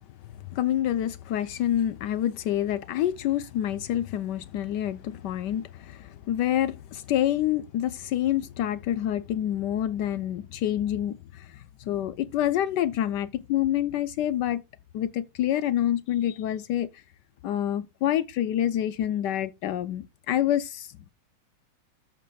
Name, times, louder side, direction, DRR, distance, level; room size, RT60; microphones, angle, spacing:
voice 1, 0.3-14.6 14.9-17.0 17.4-20.9, left 11 dB, 75° left, 0.9 m, -27 dB
14.0 x 5.2 x 2.3 m
omnidirectional pair, 2.3 m